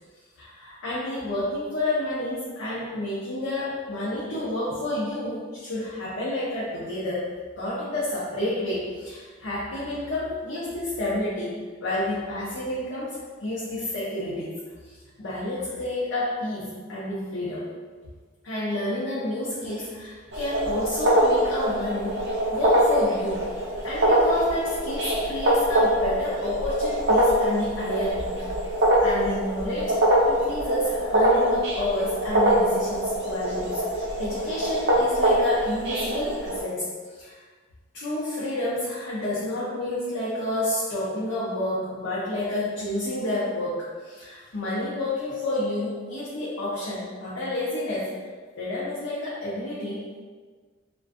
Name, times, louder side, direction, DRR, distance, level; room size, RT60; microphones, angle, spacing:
voice 1, 0.4-7.3 7.6-13.1 13.4-14.6 14.9-17.7 18.4-22.2 22.5-28.5 29.0-37.4 37.9-48.1 48.6-50.2, left 1 dB, 90° left, -9 dB, 0.6 m, -30 dB
sound 1, 20.3-36.6, right 1 dB, 60° right, 0.5 m, -23 dB
2.4 x 2.2 x 2.5 m, 1.5 s
head